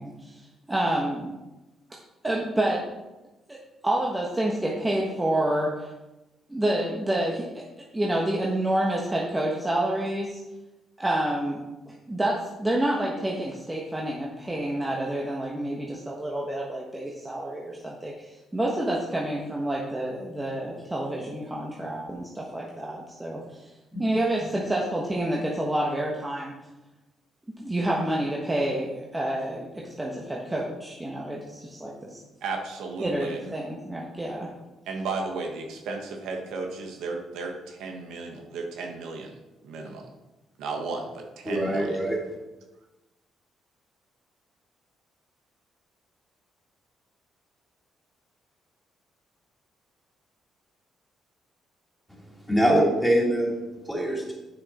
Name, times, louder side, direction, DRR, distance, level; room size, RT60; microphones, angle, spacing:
voice 1, 0.0-1.3 2.2-2.8 3.5-3.6 3.8-5.9 6.5-7.6 7.9-10.4 11.0-11.6 11.9-23.7 24.0-26.5 27.6-32.2 33.0-34.5, right 1 dB, 15° right, -3 dB, 1.3 m, -28 dB
voice 2, 32.4-33.4 34.9-40.1 40.6-42.0, right 3 dB, 85° right, 3 dB, 1.2 m, -34 dB
voice 3, 41.5-42.2 52.5-53.5 53.9-54.3, right 1 dB, 5° left, -3 dB, 2.7 m, -23 dB
7.9 x 6.5 x 4.2 m, 1.0 s
cardioid pair, 90°, 0 cm